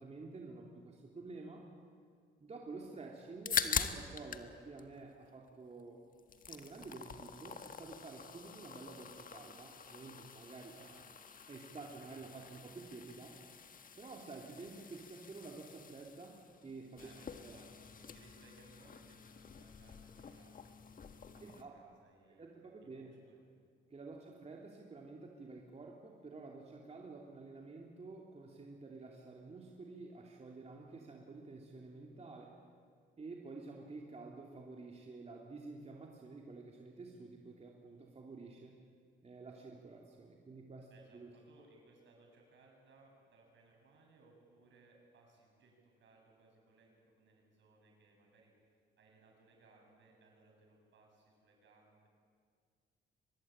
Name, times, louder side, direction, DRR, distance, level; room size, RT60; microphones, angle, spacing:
voice 1, 0.0-1.7 2.4-6.0 6.4-10.8 11.5-13.4 14.0-17.1 17.4-17.6 21.4-21.8 22.3-23.1 23.9-32.5 33.2-38.8 39.2-41.3, right 3 dB, 30° right, 0 dB, 2.9 m, -50 dB
sound 1, 3.2-4.5 4.8-5.8 6.1-21.6, left 6 dB, 45° left, 1.5 m, -44 dB
voice 2, 10.8-11.4 11.8-12.7 17.0-20.8 21.3-23.4 24.1-24.4 40.9-52.1, right 3 dB, 70° right, 0 dB, 7.9 m, -65 dB
24.0 x 21.0 x 8.9 m, 2.1 s
cardioid pair, 90°, 20 cm